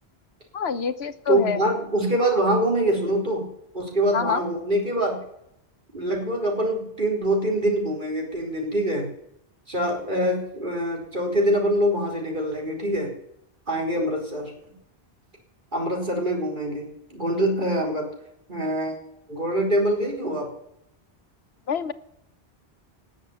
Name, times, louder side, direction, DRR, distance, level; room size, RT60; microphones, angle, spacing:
voice 1, 0.5-1.6 4.1-4.4 21.7-21.9, left 7 dB, 80° left, 12 dB, 1.3 m, -26 dB
voice 2, 1.3-3.5 3.7-5.2 5.9-9.1 9.7-13.1 13.7-14.5 15.7-18.1 18.5-19.0 19.3-20.5, right 1 dB, 50° right, 0 dB, 4.6 m, -24 dB
19.0 x 7.3 x 8.6 m, 0.76 s
omnidirectional pair, 1.1 m